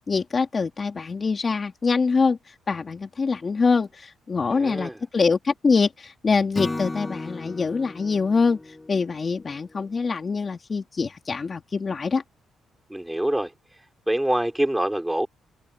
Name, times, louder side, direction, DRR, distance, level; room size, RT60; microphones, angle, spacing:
voice 1, 0.1-2.4 2.7-8.6 8.9-12.2, left 4 dB, 35° left, 3.2 m, -24 dB
voice 2, 4.5-5.0 12.9-13.5 14.1-15.3, right 1 dB, 5° right, 3.8 m, -25 dB
Acoustic guitar / Strum, 6.5-9.9, left 2 dB, 15° left, 2.0 m, -35 dB
cardioid pair, 90°, 0 cm